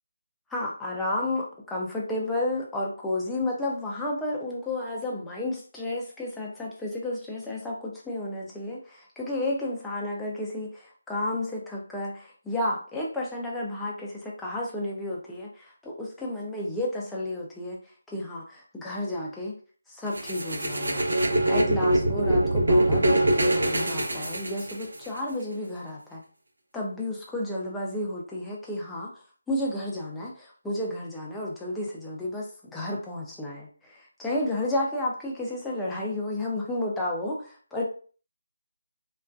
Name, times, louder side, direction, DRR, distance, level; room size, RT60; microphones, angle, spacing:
voice 1, 0.5-17.8 18.1-19.6 19.9-26.2 26.7-37.8, left 1 dB, 5° left, -4 dB, 0.3 m, -32 dB
sound 1, 20.1-25.1, right 1 dB, 90° right, 0.7 m, -23 dB
2.4 x 2.2 x 2.2 m, 0.41 s
figure-of-eight pair, 175°, 0 cm